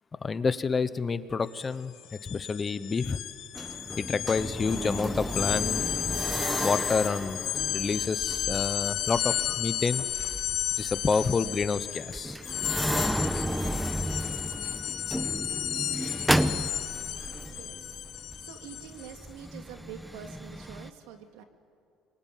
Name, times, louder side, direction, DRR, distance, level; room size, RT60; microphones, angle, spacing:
voice 1, 0.2-1.9 2.2-3.2 4.0-5.8 6.6-7.4 7.7-10.0 10.8-12.4, left 4 dB, 25° left, 14 dB, 1.0 m, -28 dB
sound 1, 1.5-1.6 1.9-19.2, left 11 dB, 65° left, 1.9 m, -33 dB
sound 2, 3.5-20.9, right 1 dB, 5° right, 1.1 m, -33 dB
voice 2, 17.5-21.4, right 8 dB, 90° right, 5 dB, 2.4 m, -46 dB
26.0 x 23.0 x 9.4 m, 2.4 s
cardioid pair, 105°, 0 cm